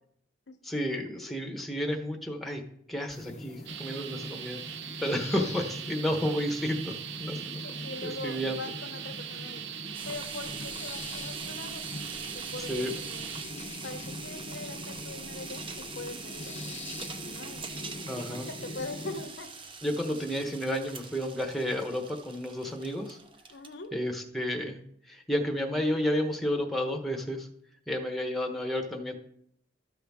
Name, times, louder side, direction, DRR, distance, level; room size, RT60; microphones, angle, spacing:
voice 1, 0.6-2.6 2.9-4.6 5.0-6.9 7.2-7.7 8.0-8.7 12.7-12.9 18.1-18.5 19.8-23.2 23.9-24.8 25.1-27.5 27.9-29.1, equal, ahead, 2 dB, 0.9 m, -31 dB
sound 1, 3.1-19.3, left 2 dB, 35° left, 0.6 m, -43 dB
sound 2, 3.7-13.5, right 9 dB, 65° right, 0.6 m, -40 dB
voice 2, 7.6-9.6 10.0-11.8 12.3-13.2 13.8-15.6 15.9-16.5 17.3-17.8 18.2-19.5 23.5-23.9, left 3 dB, 70° left, 7 dB, 0.9 m, -42 dB
sound 3, 9.9-23.8, right 4 dB, 30° right, 0.7 m, -43 dB
12.5 x 5.7 x 3.5 m, 0.71 s
head